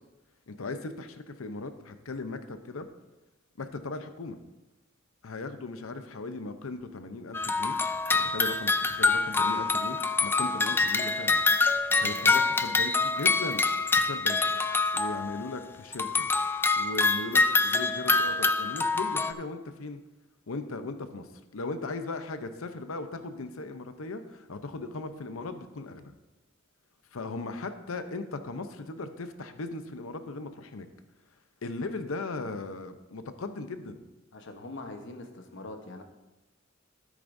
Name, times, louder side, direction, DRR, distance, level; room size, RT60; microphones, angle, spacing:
voice 1, 0.5-2.9 3.6-4.4 5.2-7.8 8.1-11.4 12.0-13.6 14.1-14.4 14.9-16.3 16.7-20.0 20.5-21.3 21.5-26.1 27.1-30.9 31.6-34.0, left 3 dB, 90° left, 9 dB, 0.7 m, -37 dB
sound 1, 7.3-15.5 15.9-19.3, left 3 dB, 10° left, 0.3 m, -26 dB
voice 2, 11.9-12.3 34.3-36.0, left 2 dB, 60° left, 5 dB, 1.1 m, -43 dB
13.5 x 8.3 x 2.7 m, 1.0 s
head